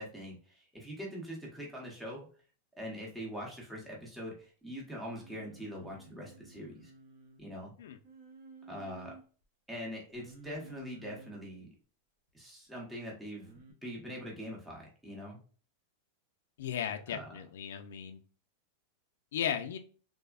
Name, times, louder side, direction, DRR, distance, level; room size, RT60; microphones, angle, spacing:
voice 1, 0.0-2.3 2.8-6.9 7.4-7.7 8.7-9.1 9.7-11.7 12.3-15.4 17.1-17.3, equal, 5° right, -2 dB, 0.8 m, -43 dB
Singing, 5.0-7.4 8.0-9.2 10.1-11.5 13.4-13.7, right 2 dB, 45° right, 0.7 m, -53 dB
voice 2, 16.6-18.2 19.3-19.8, left 9 dB, 80° left, 5 dB, 0.3 m, -36 dB
3.3 x 2.0 x 2.2 m, 0.40 s
supercardioid pair, 165°, 0 cm